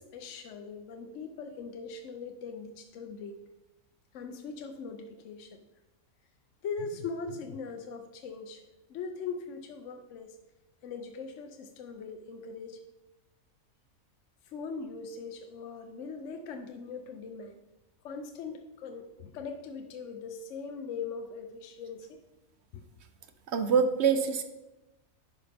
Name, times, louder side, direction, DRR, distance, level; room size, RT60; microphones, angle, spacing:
voice 1, 0.0-3.4 4.1-5.6 6.6-10.4 10.8-12.8 14.4-17.6 18.0-22.2 22.7-22.8, left 5 dB, 65° left, 5 dB, 0.9 m, -40 dB
voice 2, 23.5-24.4, right 6 dB, 60° right, 8 dB, 0.9 m, -25 dB
10.5 x 5.5 x 3.4 m, 1.0 s
omnidirectional pair, 1.5 m